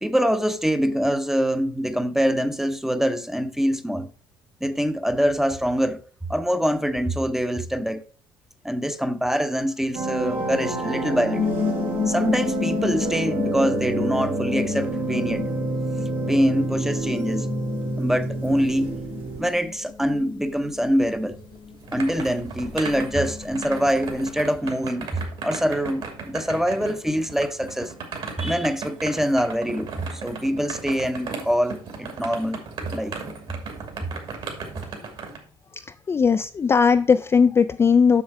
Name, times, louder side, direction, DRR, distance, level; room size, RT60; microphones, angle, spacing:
voice 1, 0.0-4.1 4.6-6.0 6.3-8.0 8.6-11.5 12.1-15.4 16.3-17.5 18.0-18.9 19.4-21.4 21.9-27.9 28.4-33.2 34.0-34.1, equal, 5° right, 0.7 m, -24 dB
sound 1, 9.9-19.4, right 3 dB, 75° right, 2.3 m, -28 dB
sound 2, 11.3-24.3, left 6 dB, 50° left, 1.0 m, -32 dB
sound 3, 21.4-35.4, right 4 dB, 55° right, 2.5 m, -36 dB
voice 2, 35.7-38.2, left 6 dB, 25° left, 0.3 m, -18 dB
7.3 x 6.2 x 4.7 m
cardioid pair, 95°, 10 cm